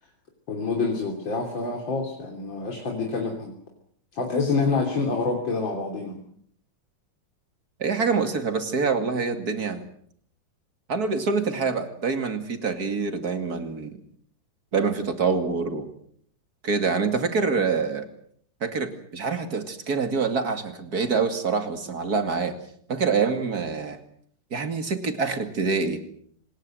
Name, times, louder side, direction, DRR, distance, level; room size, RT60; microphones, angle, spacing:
voice 1, 0.5-3.6 4.1-6.2, left 4 dB, 80° left, 2 dB, 3.9 m, -27 dB
voice 2, 7.8-9.8 10.9-14.0 14.7-15.9 16.6-18.1 18.6-22.5 22.9-24.0 24.5-26.0, right 4 dB, 55° right, 8 dB, 2.9 m, -26 dB
25.5 x 20.0 x 7.7 m, 0.64 s
omnidirectional pair, 2.1 m